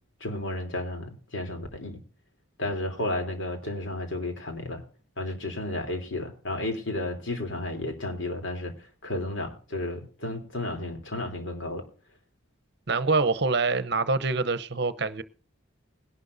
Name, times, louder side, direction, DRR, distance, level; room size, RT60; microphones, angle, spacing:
voice 1, 0.2-2.0 2.6-4.8 5.2-8.7 9.0-11.8, left 1 dB, 70° left, 3.3 m, -32 dB
voice 2, 12.9-15.2, right 3 dB, 55° right, 0.8 m, -25 dB
20.5 x 11.5 x 2.7 m
head